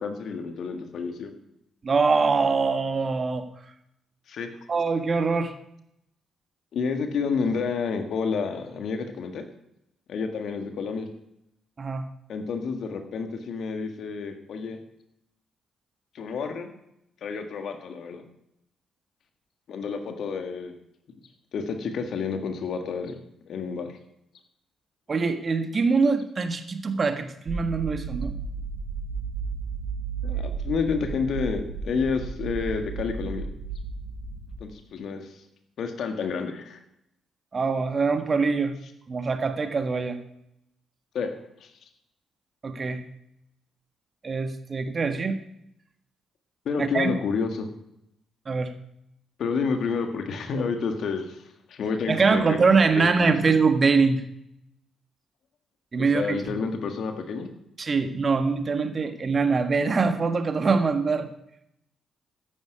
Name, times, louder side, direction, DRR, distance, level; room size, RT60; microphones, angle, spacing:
voice 1, 0.0-1.3 4.3-4.5 6.7-9.4 10.1-11.1 12.3-14.8 16.1-16.7 17.2-18.2 19.7-20.7 21.5-23.1 23.5-23.9 30.2-33.4 34.6-35.4 35.8-36.8 41.1-41.3 41.6-41.7 46.6-47.7 49.4-51.4 51.7-52.6 52.9-53.1 56.0-57.5, left 5 dB, 60° left, 6 dB, 1.7 m, -29 dB
voice 2, 1.8-3.5 4.7-5.5 11.8-12.0 25.1-28.3 37.5-38.7 39.1-40.2 42.6-43.0 44.2-45.4 46.8-47.1 48.4-48.7 52.1-54.2 55.9-56.5 57.8-61.3, right 4 dB, 40° right, 8 dB, 1.5 m, -23 dB
sound 1, 27.5-34.6, right 5 dB, 70° right, 2.5 m, -33 dB
13.5 x 10.5 x 4.8 m, 0.79 s
hypercardioid pair, 40°, 0 cm